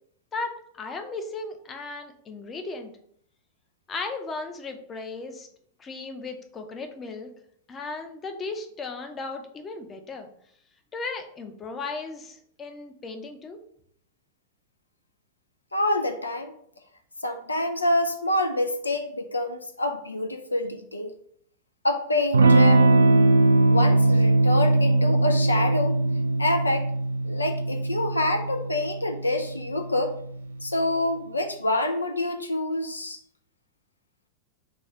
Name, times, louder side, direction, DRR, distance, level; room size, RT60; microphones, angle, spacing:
voice 1, 0.3-2.9 3.9-5.5 5.8-7.3 7.7-10.3 10.9-13.6, left 3 dB, 25° left, 5 dB, 0.6 m, -36 dB
voice 2, 15.7-16.5 17.2-21.1 21.8-22.9 23.7-26.0 26.4-26.9 27.2-30.2 30.6-33.2, left 1 dB, 80° left, 6 dB, 0.4 m, -27 dB
Electric guitar / Strum, 22.3-30.6, right 2 dB, 70° right, 0.3 m, -21 dB
4.1 x 2.3 x 4.6 m, 0.66 s
figure-of-eight pair, 90°, 0 cm